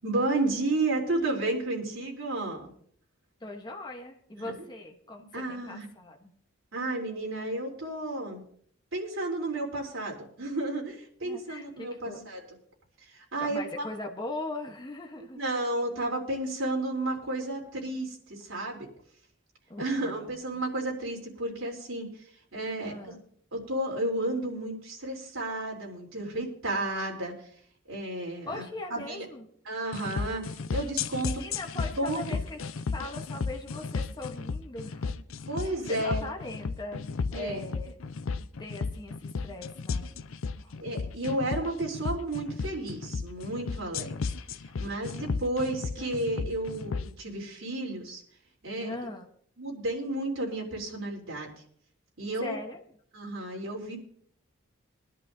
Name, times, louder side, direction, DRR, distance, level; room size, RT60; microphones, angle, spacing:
voice 1, 0.0-2.7 4.4-4.5 5.3-5.9 6.7-8.4 8.9-12.4 13.1-13.9 15.4-18.9 19.8-22.1 22.5-23.2 23.5-27.3 27.9-28.6 28.9-29.3 29.7-31.4 32.0-32.3 35.5-36.2 37.3-37.6 40.8-44.1 44.8-48.2 48.6-49.0 49.6-51.5 52.2-52.6 53.1-54.0, right 2 dB, 75° right, -2 dB, 3.4 m, -32 dB
voice 2, 3.4-6.3 11.2-12.2 13.4-15.4 19.7-20.3 20.5-20.6 22.8-23.3 28.5-29.5 31.2-37.0 37.3-38.0 38.6-40.1 40.6-40.7 44.7-44.8 48.8-49.3 52.4-52.8, left 2 dB, 20° left, 2 dB, 1.1 m, -40 dB
sound 1, 29.9-47.1, left 4 dB, 75° left, 0.5 m, -34 dB
22.5 x 11.0 x 2.7 m, 0.62 s
head